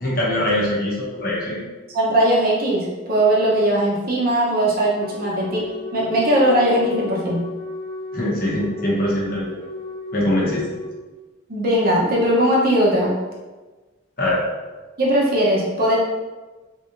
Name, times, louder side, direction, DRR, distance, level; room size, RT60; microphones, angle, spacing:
voice 1, 0.0-1.6 8.1-9.5 10.1-10.7 14.2-14.4, left 1 dB, 50° left, -5 dB, 1.0 m, -22 dB
voice 2, 1.9-7.4 11.5-13.2 15.0-16.0, right 1 dB, 50° right, -4 dB, 0.8 m, -19 dB
Wind instrument woodwind instrument, 5.0-11.0, left 3 dB, 30° left, 1.2 m, -34 dB
3.7 x 3.0 x 2.6 m, 1.2 s
head